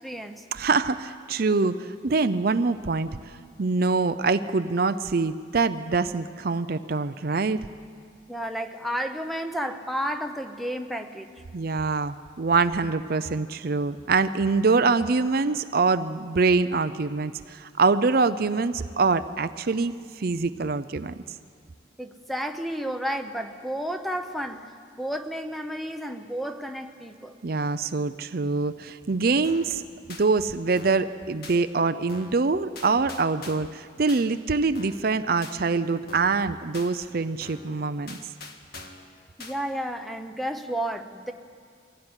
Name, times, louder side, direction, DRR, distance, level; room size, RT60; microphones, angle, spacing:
voice 1, 0.0-0.4 8.3-11.3 22.0-27.4 39.4-41.3, equal, ahead, 7 dB, 0.9 m, -32 dB
voice 2, 0.5-7.7 11.5-21.1 27.4-29.8 30.2-38.2, right 4 dB, 50° right, 11 dB, 0.5 m, -24 dB
sound 1, 29.4-29.7 30.1-30.3 30.8-31.1 31.4-31.6 32.1-32.4 32.8-33.7 34.1-34.2 34.7-35.1 35.4-35.6 36.1-36.4 36.7-36.9 37.4-37.7 38.1-39.1 39.4-39.6, left 3 dB, 50° left, 2.0 m, -43 dB
23.5 x 16.5 x 9.7 m, 2.2 s
head